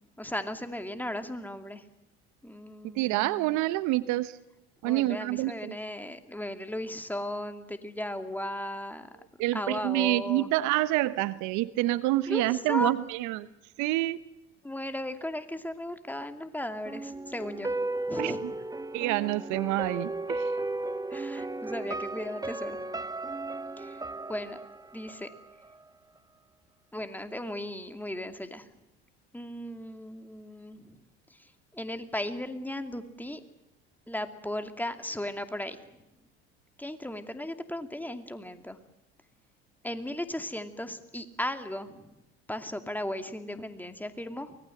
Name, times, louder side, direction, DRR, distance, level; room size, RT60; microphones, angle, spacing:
voice 1, 0.2-1.8 2.4-3.6 4.8-9.1 9.5-10.5 12.3-12.9 14.6-17.7 18.1-18.4 21.1-22.9 23.8-24.0 24.3-24.6 24.9-25.3 26.9-28.7 29.3-31.0 31.3-33.4 34.1-36.0 36.8-38.8 39.8-42.1 42.5-44.6, left 1 dB, 5° left, 8 dB, 2.5 m, -36 dB
voice 2, 3.0-4.4 4.8-5.8 9.4-13.5 13.8-14.2 18.2-18.3 18.9-20.5, right 17 dB, 60° right, 15 dB, 1.0 m, -27 dB
sound 1, 16.9-25.8 26.2-26.3, right 2 dB, 10° right, 1.1 m, -35 dB
24.5 x 19.5 x 7.9 m, 0.91 s
hypercardioid pair, 70°, 32 cm